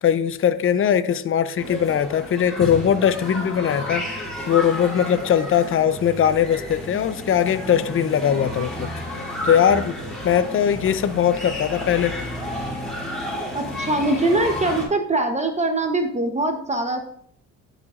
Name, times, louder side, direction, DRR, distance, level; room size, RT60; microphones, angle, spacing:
voice 1, 0.0-8.9 9.4-10.0 10.2-12.2, left 9 dB, 45° left, 0.6 m, -20 dB
sound 1, 1.6-14.9, left 1 dB, ahead, 3.0 m, -31 dB
voice 2, 13.5-17.0, right 2 dB, 25° right, 0.8 m, -22 dB
13.5 x 5.0 x 2.4 m
cardioid pair, 90°, 30 cm